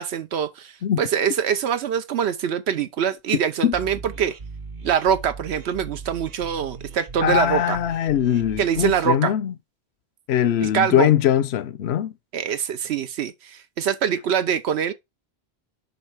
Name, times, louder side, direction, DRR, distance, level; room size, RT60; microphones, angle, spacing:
voice 1, 0.0-0.7 1.0-4.3 4.8-7.8 8.6-9.3 10.6-11.1 12.3-14.9, right 8 dB, 80° right, 0.9 m, -24 dB
sound 1, 3.7-9.1, right 4 dB, 50° right, 1.0 m, -39 dB
voice 2, 7.2-9.5 10.3-12.1, left 11 dB, 80° left, 0.9 m, -21 dB
7.2 x 5.3 x 3.3 m
omnidirectional pair, 1.1 m